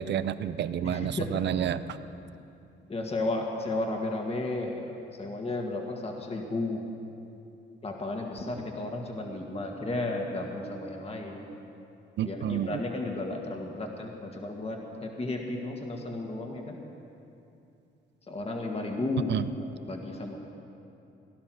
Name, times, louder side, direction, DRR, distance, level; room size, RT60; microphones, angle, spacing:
voice 1, 0.0-1.8 12.2-12.8 19.3-19.4, right 10 dB, 60° right, 13 dB, 0.6 m, -29 dB
voice 2, 0.8-1.5 2.9-6.8 7.8-11.4 12.2-16.8 18.3-20.4, left 2 dB, 30° left, 1 dB, 1.9 m, -33 dB
18.0 x 11.5 x 6.3 m, 2.7 s
cardioid pair, 90°, 20 cm